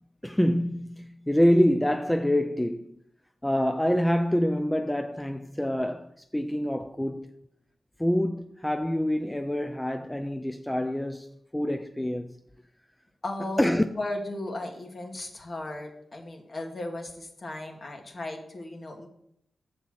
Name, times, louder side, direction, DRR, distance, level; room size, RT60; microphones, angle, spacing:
voice 1, 0.2-3.0 3.4-7.3 8.0-12.3 13.6-13.8, equal, 10° left, 0.4 m, -26 dB
voice 2, 13.2-19.1, left 1 dB, 45° left, 1.6 m, -36 dB
6.9 x 4.2 x 6.2 m
supercardioid pair, 45°, 0 cm